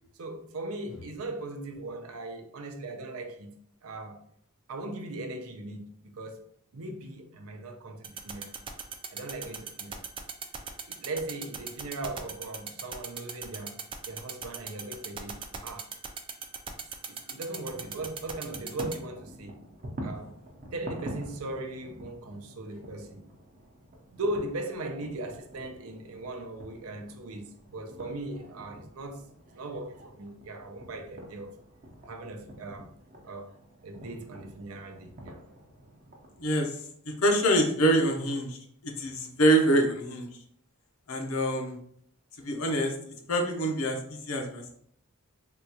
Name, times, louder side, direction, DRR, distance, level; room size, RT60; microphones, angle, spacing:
voice 1, 0.2-3.5 3.8-4.2 4.7-6.4 6.7-8.5 9.1-10.0 10.9-13.8 14.1-15.9 16.7-19.6 20.0-20.3 20.7-23.2 24.1-29.2 29.5-31.6 32.1-32.9 33.2-33.5 33.8-35.4, right 2 dB, 80° right, 0.5 m, -38 dB
sound 1, 8.0-18.9, right 7 dB, 25° right, 0.3 m, -37 dB
sound 2, 17.6-36.6, right 1 dB, 40° right, 0.7 m, -46 dB
voice 2, 36.4-36.8 37.0-38.6 38.8-40.3 41.1-41.8 42.4-42.9 43.3-44.7, right 1 dB, 85° left, 0.7 m, -25 dB
3.7 x 2.3 x 2.8 m
head